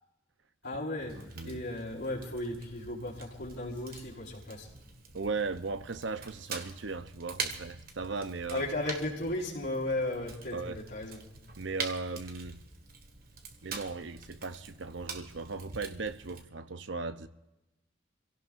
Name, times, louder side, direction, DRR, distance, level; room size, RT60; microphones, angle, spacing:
voice 1, 0.6-1.2 1.4-4.7 8.5-11.2, left 1 dB, 60° left, 5.1 m, -35 dB
Fire, 1.1-16.4, right 5 dB, 50° right, 1.7 m, -45 dB
voice 2, 5.1-8.6 10.5-10.8 11.6-12.6 13.6-17.3, right 4 dB, 70° right, 0.8 m, -37 dB
29.0 x 17.0 x 2.6 m
head